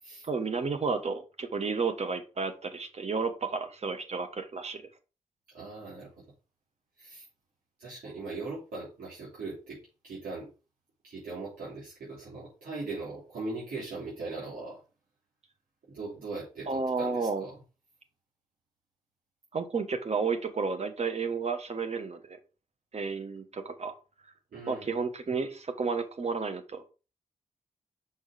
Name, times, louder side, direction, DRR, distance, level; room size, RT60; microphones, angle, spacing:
voice 1, 0.2-4.8 16.7-17.5 19.5-22.4 22.9-23.9 24.7-26.9, right 4 dB, 50° right, 8 dB, 1.2 m, -32 dB
voice 2, 5.5-6.1 7.0-7.3 7.8-10.5 11.0-14.8 15.9-17.6 24.5-24.9, right 3 dB, 80° right, -8 dB, 3.1 m, -40 dB
6.0 x 4.0 x 4.9 m, 0.33 s
cardioid pair, 50°, 15 cm